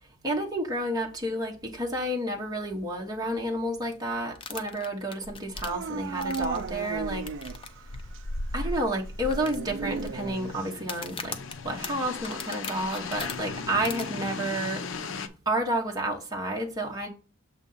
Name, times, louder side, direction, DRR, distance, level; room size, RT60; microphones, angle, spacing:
voice 1, 0.2-7.2 8.5-11.4 11.6-14.8 15.5-17.1, right 1 dB, 20° right, 1.0 m, -30 dB
sound 1, 4.4-6.7 7.3-7.7 7.9-8.0 8.6-8.7 9.3-10.1 10.8-13.3 13.8-14.0, left 5 dB, 25° left, 0.5 m, -38 dB
sound 2, 5.2-15.3, left 3 dB, 70° left, 0.6 m, -37 dB
Dog / Siren, 5.6-7.8 8.1-8.2 9.2-10.8, right 5 dB, 60° right, 0.3 m, -35 dB
6.9 x 2.8 x 5.4 m
head